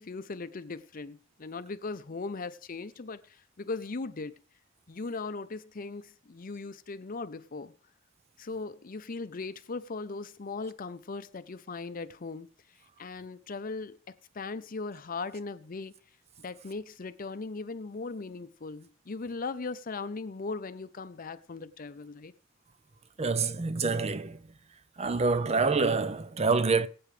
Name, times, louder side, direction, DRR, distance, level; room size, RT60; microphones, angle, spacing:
voice 1, 0.0-4.4 4.9-7.7 8.4-12.5 13.0-15.9 16.4-22.3, left 3 dB, 45° left, 0.6 m, -38 dB
voice 2, 23.2-24.5 25.0-26.9, right 4 dB, 35° right, 0.6 m, -27 dB
21.0 x 8.7 x 3.3 m
head